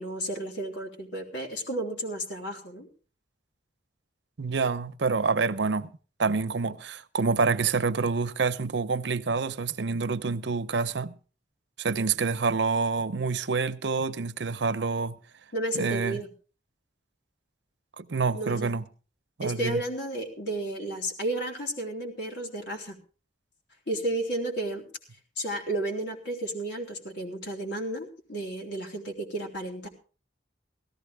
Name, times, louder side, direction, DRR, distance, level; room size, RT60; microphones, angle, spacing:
voice 1, 0.0-2.9 15.5-16.3 18.3-18.7 19.4-23.0 23.9-24.9 25.4-29.9, right 1 dB, 75° left, 3.6 m, -32 dB
voice 2, 4.4-5.9 6.2-11.2 11.8-15.2 15.7-16.2 18.0-18.8 19.4-19.8, right 4 dB, 75° right, 0.7 m, -27 dB
17.5 x 14.5 x 3.4 m
head